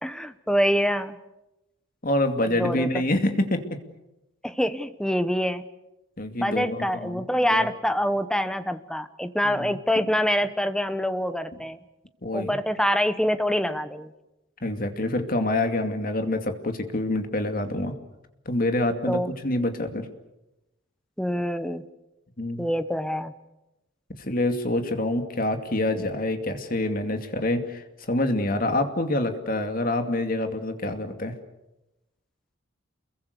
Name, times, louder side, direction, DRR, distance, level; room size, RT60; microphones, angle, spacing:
voice 1, 0.0-1.2 2.4-2.9 4.4-5.6 6.4-11.8 12.3-14.1 19.1-19.3 21.2-21.8 22.6-23.3, equal, 5° left, 11 dB, 1.0 m, -25 dB
voice 2, 2.0-3.8 6.2-7.2 7.5-7.7 9.4-9.8 12.2-12.6 14.6-17.9 18.5-20.1 22.4-22.7 24.3-31.3, left 1 dB, 45° left, 6 dB, 2.5 m, -26 dB
29.0 x 22.5 x 6.8 m, 0.94 s
head